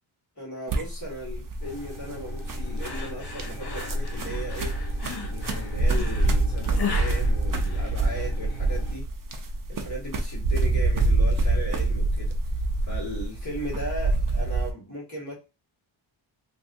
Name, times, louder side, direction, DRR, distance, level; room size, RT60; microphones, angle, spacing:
voice 1, 0.4-4.9 5.2-9.1 9.7-12.3 12.9-15.3, equal, 35° left, -3 dB, 1.9 m, -37 dB
sound 1, 0.7-14.7, right 2 dB, 45° right, 0.7 m, -26 dB
sound 2, 1.6-9.0, equal, 85° left, 1.1 m, -40 dB
sound 3, 2.8-8.3, left 5 dB, 55° left, 1.0 m, -37 dB
3.2 x 2.6 x 2.6 m, 0.28 s
wide cardioid pair, 115°, 48 cm